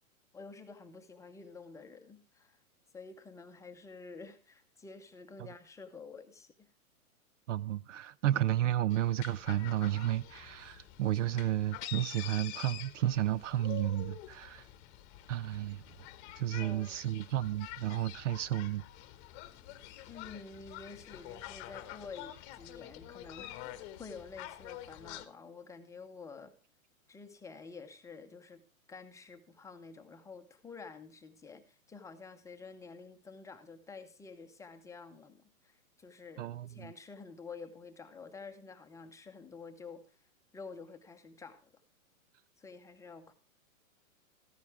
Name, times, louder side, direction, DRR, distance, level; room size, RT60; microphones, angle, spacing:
voice 1, 0.3-2.6 2.9-6.7 16.6-17.3 20.1-26.5 27.1-28.6 28.9-40.2 40.5-41.8 42.6-43.3, left 4 dB, 5° left, 0.8 m, -50 dB
voice 2, 7.5-14.7 15.3-15.8 16.4-18.8 36.4-36.9, right 13 dB, 60° right, 0.5 m, -32 dB
sound 1, 8.9-25.2, left 13 dB, 30° left, 1.0 m, -47 dB
14.0 x 10.5 x 3.5 m
hypercardioid pair, 130°, 42 cm